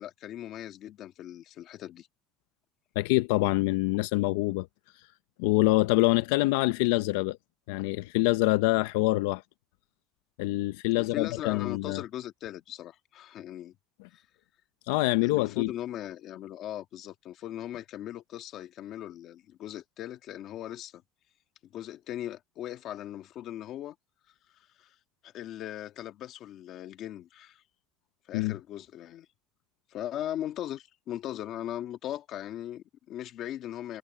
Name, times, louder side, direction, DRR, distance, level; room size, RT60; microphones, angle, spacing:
voice 1, 0.0-2.1 10.9-13.7 14.1-14.2 15.2-21.0 21.6-23.9 24.5-25.0 25.2-27.6 28.3-29.3 29.9-34.0, left 12 dB, 40° left, 1.5 m, -39 dB
voice 2, 3.0-4.7 5.4-7.4 7.7-9.4 10.4-12.0 14.9-15.7 28.3-28.5, left 20 dB, 85° left, 0.5 m, -25 dB
cardioid pair, 170°, 0 cm